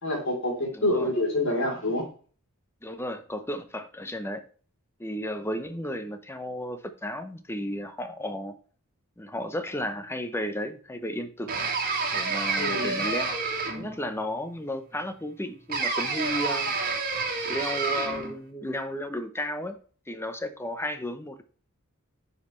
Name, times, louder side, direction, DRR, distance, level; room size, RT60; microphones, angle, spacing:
voice 1, 0.0-2.0 12.6-13.0, left 1 dB, 60° left, 0 dB, 3.3 m, -27 dB
voice 2, 0.7-1.1 2.8-4.4 5.0-8.6 9.2-11.5 12.1-13.4 13.7-16.7 17.4-19.8 20.1-21.4, left 1 dB, 10° left, 9 dB, 0.8 m, -33 dB
sound 1, 11.5-14.0 15.7-18.3, right 4 dB, 40° right, 1.8 m, -29 dB
9.7 x 5.4 x 3.2 m, 0.42 s
head